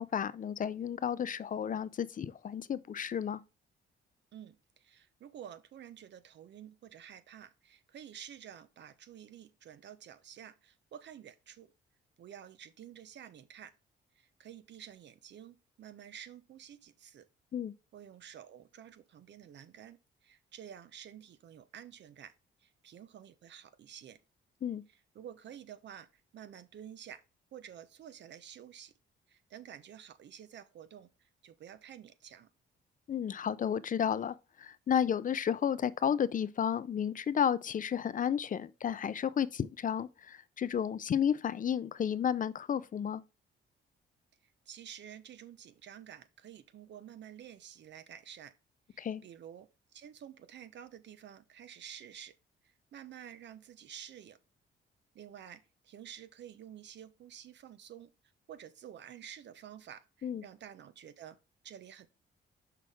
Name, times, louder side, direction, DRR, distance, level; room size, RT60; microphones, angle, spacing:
voice 1, 0.0-3.4 17.5-17.7 24.6-24.8 33.1-43.2 49.0-49.2 60.2-60.4, left 8 dB, 40° left, 0.5 m, -32 dB
voice 2, 4.3-11.7 12.2-13.7 14.1-17.2 17.9-22.3 22.6-24.2 24.9-27.2 27.5-28.9 29.3-32.5 44.4-48.5 48.9-52.3 52.6-54.4 55.1-58.1 58.5-61.4 61.6-62.1, right 9 dB, 65° right, 0.9 m, -50 dB
6.0 x 5.8 x 3.5 m
cardioid pair, 90°, 20 cm